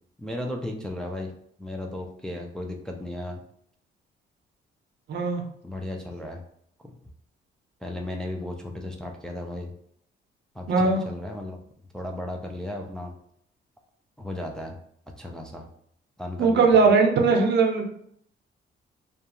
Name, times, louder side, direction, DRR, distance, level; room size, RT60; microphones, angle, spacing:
voice 1, 0.2-1.3 1.6-3.4 5.6-6.4 6.8-6.9 7.8-9.7 10.6-11.6 11.9-13.1 14.2-14.8 15.2-15.6 16.2-16.8, left 1 dB, 5° left, 1 dB, 0.3 m, -35 dB
voice 2, 5.1-5.4 10.7-11.0 16.4-17.8, right 4 dB, 60° right, 2 dB, 0.6 m, -19 dB
2.3 x 2.2 x 2.8 m, 0.67 s
cardioid pair, 90°, 20 cm